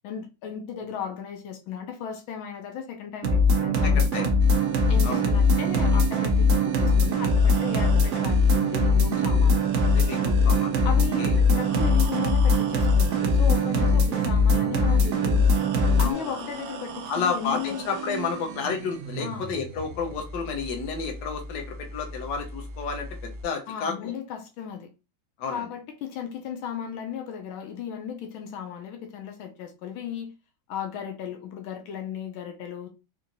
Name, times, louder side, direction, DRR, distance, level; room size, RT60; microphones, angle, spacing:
voice 1, 0.0-4.3 4.9-9.7 10.8-15.5 16.0-17.9 19.2-19.5 23.7-24.9 25.5-30.3 30.7-32.9, left 8 dB, 85° left, 1.4 m, -35 dB
sound 1, 3.2-16.1, left 2 dB, 90° right, 0.6 m, -21 dB
voice 2, 3.9-4.3 5.0-5.3 9.9-10.8 11.2-11.3 16.0-16.4 17.1-24.1 25.4-25.6, left 5 dB, 65° left, 1.3 m, -31 dB
sound 2, 4.4-23.4, right 8 dB, 75° right, 1.0 m, -38 dB
4.5 x 2.6 x 2.5 m
omnidirectional pair, 2.2 m